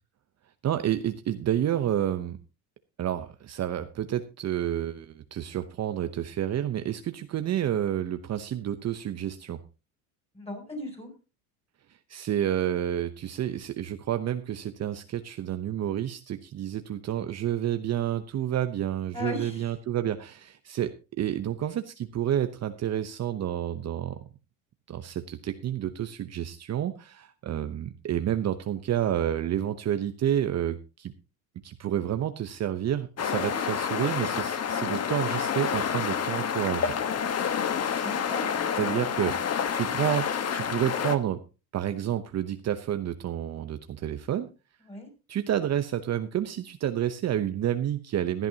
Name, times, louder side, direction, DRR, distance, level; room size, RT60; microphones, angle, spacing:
voice 1, 0.6-2.4 3.0-9.6 12.1-24.2 24.9-31.1 31.6-36.9 38.8-41.4 41.7-44.5 45.3-48.5, right 11 dB, 40° right, 9 dB, 0.9 m, -29 dB
voice 2, 10.3-11.1 19.1-19.7 38.0-38.9 44.8-45.1, left 1 dB, 15° left, 4 dB, 6.9 m, -38 dB
sound 1, 33.2-41.2, left 7 dB, 35° left, 1.4 m, -29 dB
16.5 x 12.0 x 2.9 m, 0.30 s
supercardioid pair, 100°, 41 cm